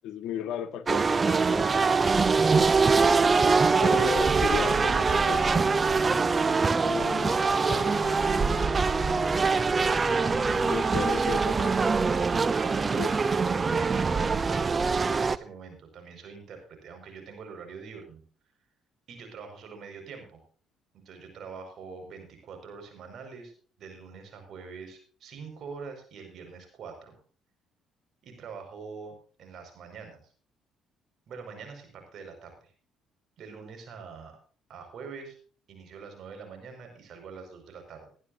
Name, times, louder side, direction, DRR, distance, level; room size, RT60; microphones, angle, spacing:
voice 1, 0.0-2.2 3.8-5.7 6.8-8.2 10.6-11.8 13.0-13.1, left 9 dB, 70° left, 9 dB, 1.5 m, -36 dB
sound 1, 0.9-15.4, right 4 dB, 35° right, 0.8 m, -23 dB
sound 2, 4.7-10.7, left 5 dB, 15° left, 7.2 m, -42 dB
voice 2, 10.6-11.3 12.6-18.2 19.1-20.4 20.9-23.5 23.8-27.1 28.2-30.3 31.3-32.7 33.4-34.4 34.7-35.4 35.7-38.1, right 5 dB, 60° right, 5 dB, 5.3 m, -44 dB
21.5 x 11.0 x 2.7 m, 0.42 s
supercardioid pair, 60°, 0 cm